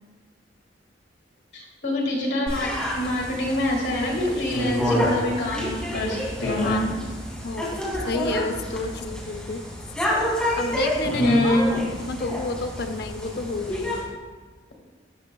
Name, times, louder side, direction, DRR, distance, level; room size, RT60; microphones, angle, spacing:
voice 1, 1.5-6.9 11.0-11.7, left 1 dB, 85° left, 0 dB, 1.7 m, -25 dB
sound 1, 2.5-14.0, equal, 5° left, 1.9 m, -29 dB
voice 2, 7.4-7.8 8.0-9.6 10.6-11.2 12.1-14.0, left 3 dB, 60° left, 7 dB, 0.6 m, -30 dB
12.5 x 5.5 x 2.3 m, 1.4 s
head